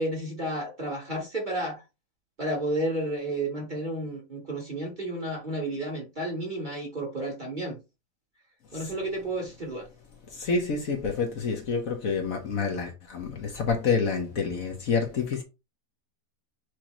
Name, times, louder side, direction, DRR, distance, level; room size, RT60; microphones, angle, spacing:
voice 1, 0.0-1.8 2.4-7.8 8.7-9.9, right 1 dB, 30° right, 1.3 m, -31 dB
voice 2, 10.3-15.4, left 5 dB, 60° left, 1.3 m, -28 dB
6.2 x 2.8 x 3.0 m
omnidirectional pair, 1.8 m